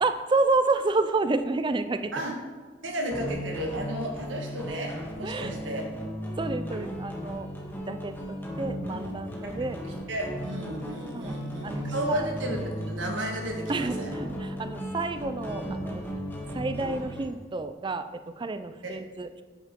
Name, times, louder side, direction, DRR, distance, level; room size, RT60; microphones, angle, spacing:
voice 1, 0.0-2.1 5.2-5.6 6.4-7.5 7.9-8.1 8.6-9.8 11.1-11.4 11.6-12.3 13.7-16.0 16.5-19.4, right 3 dB, 25° right, 10 dB, 0.4 m, -29 dB
voice 2, 2.8-5.8 10.1-14.1 18.8-19.0, right 1 dB, 80° right, 2 dB, 1.5 m, -33 dB
sound 1, 3.1-17.2, equal, 10° left, 1.6 m, -36 dB
9.3 x 8.5 x 3.7 m, 1.5 s
head